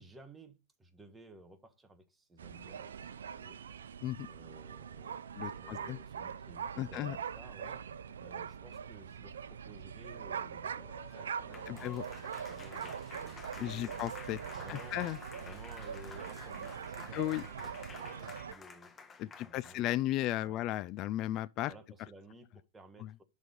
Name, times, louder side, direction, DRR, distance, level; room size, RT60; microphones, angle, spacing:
voice 1, 0.0-3.6 4.2-5.2 5.5-7.8 8.2-10.9 11.2-14.1 14.5-15.0 15.3-18.9 19.2-20.0 20.2-20.7 21.7-23.2, right 1 dB, 10° right, 1.5 m, -55 dB
sound 1, 2.4-18.5, right 7 dB, 80° right, 0.7 m, -43 dB
voice 2, 5.4-6.0 6.8-7.2 11.7-12.0 13.6-14.4 14.7-15.2 17.1-17.4 19.2-21.7 23.0-23.1, left 15 dB, 40° left, 0.4 m, -35 dB
Applause, 10.7-19.9, left 5 dB, 20° left, 1.5 m, -52 dB
11.0 x 4.2 x 5.2 m
hypercardioid pair, 115°, 0 cm